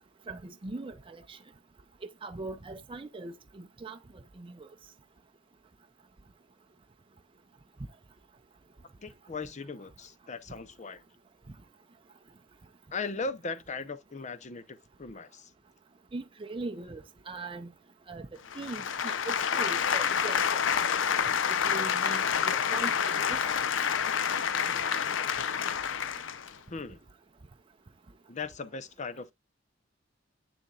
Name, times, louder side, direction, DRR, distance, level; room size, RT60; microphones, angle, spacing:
voice 1, 0.3-1.4 2.2-4.0 4.4-4.7 16.1-17.7 18.1-18.3 18.5-20.9 21.6-23.6, right 3 dB, 30° right, 0.5 m, -41 dB
voice 2, 9.0-11.0 12.9-15.5 26.7-27.0 28.3-29.3, left 4 dB, 40° left, 0.7 m, -38 dB
sound 1, 18.5-26.5, left 7 dB, 80° left, 0.6 m, -28 dB
7.9 x 6.9 x 2.3 m
head